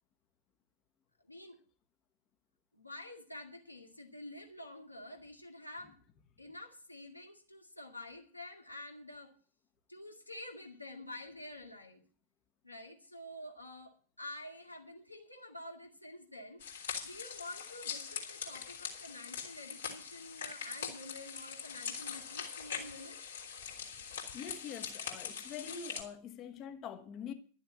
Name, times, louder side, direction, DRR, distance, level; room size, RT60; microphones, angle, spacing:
voice 1, 1.3-1.6 2.7-6.0 6.4-9.3 9.9-12.0 12.6-16.6 17.0-23.2, left 1 dB, 85° left, 2.2 m, -48 dB
sound 1, 16.6-26.0, left 7 dB, 65° left, 3.5 m, -42 dB
voice 2, 24.3-27.3, left 7 dB, 35° left, 1.3 m, -45 dB
12.5 x 7.2 x 8.4 m
figure-of-eight pair, 90°, 0 cm